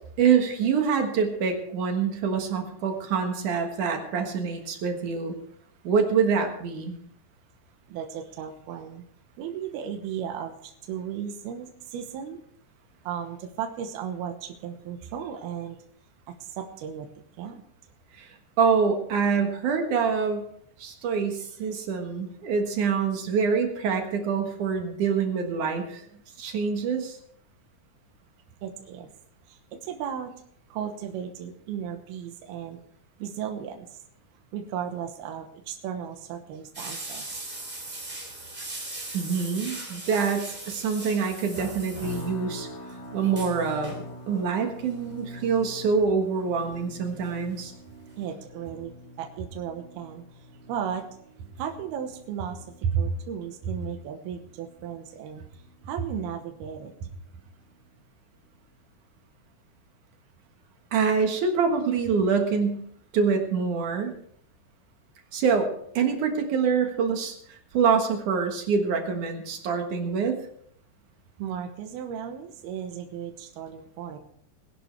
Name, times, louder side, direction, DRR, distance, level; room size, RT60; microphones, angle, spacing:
voice 1, 0.2-5.4 5.8-7.0 18.2-18.3 18.6-20.5 20.8-26.0 26.4-27.2 39.1-42.7 43.1-47.7 52.9-53.0 60.9-62.8 63.1-64.1 65.3-70.4, right 6 dB, 60° right, 4 dB, 2.6 m, -25 dB
voice 2, 7.9-9.0 9.4-12.4 13.0-15.8 16.4-17.1 17.4-17.6 28.6-29.1 29.5-30.3 30.7-32.8 33.2-33.9 34.5-37.4 48.2-48.9 49.2-50.2 50.7-51.0 51.6-52.6 53.0-55.4 55.9-56.9 71.4-74.2, right 8 dB, 75° right, 4 dB, 3.0 m, -35 dB
sound 1, 36.7-42.6 42.9-43.0 43.2-44.1 45.2-45.4 46.0-47.3 47.6-47.7 48.1-48.2, right 2 dB, 15° right, 2.7 m, -39 dB
sound 2, 42.0-57.2 57.6-58.0 58.5-58.7, left 2 dB, 75° left, 4.5 m, -45 dB
21.0 x 11.0 x 3.4 m, 0.65 s
omnidirectional pair, 4.7 m